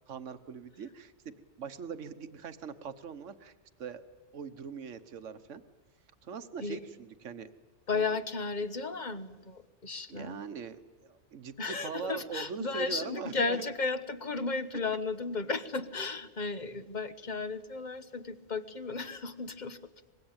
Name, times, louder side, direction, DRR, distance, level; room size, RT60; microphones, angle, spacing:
voice 1, 0.1-3.5 3.8-4.0 4.3-5.6 6.2-7.5 7.9-8.1 10.1-13.7, right 6 dB, 80° right, 12 dB, 1.4 m, -41 dB
voice 2, 7.9-10.4 11.6-19.9, left 4 dB, 40° left, 12 dB, 1.2 m, -34 dB
24.5 x 22.0 x 8.8 m, 1.3 s
omnidirectional pair, 1.3 m